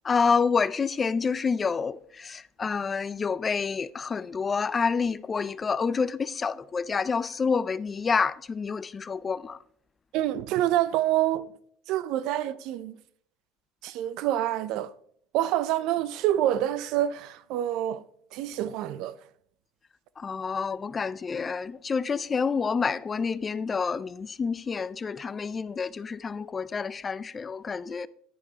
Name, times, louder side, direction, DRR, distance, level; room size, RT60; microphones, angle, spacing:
voice 1, 0.0-9.6 20.2-28.1, left 5 dB, 20° left, 0.3 m, -28 dB
voice 2, 10.1-11.5 11.9-13.0 13.8-14.9 15.3-18.0 18.3-19.2, right 12 dB, 60° right, 0.5 m, -27 dB
10.5 x 10.0 x 2.9 m
cardioid pair, 135°, 0 cm